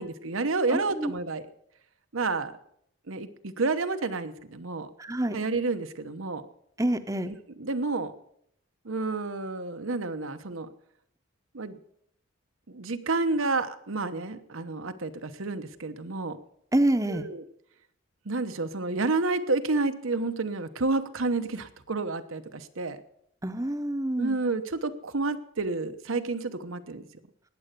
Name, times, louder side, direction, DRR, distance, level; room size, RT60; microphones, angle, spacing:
voice 1, 0.0-1.5 2.1-2.6 3.1-4.9 5.3-6.4 7.3-8.1 8.8-10.7 11.5-11.8 12.7-16.4 17.1-17.4 18.2-23.0 24.2-27.1, right 3 dB, 90° right, 9 dB, 1.0 m, -30 dB
voice 2, 0.7-1.1 5.0-5.4 6.8-7.3 16.7-17.2 23.4-24.4, right 1 dB, 15° right, 10 dB, 0.7 m, -27 dB
19.0 x 7.9 x 6.8 m, 0.72 s
head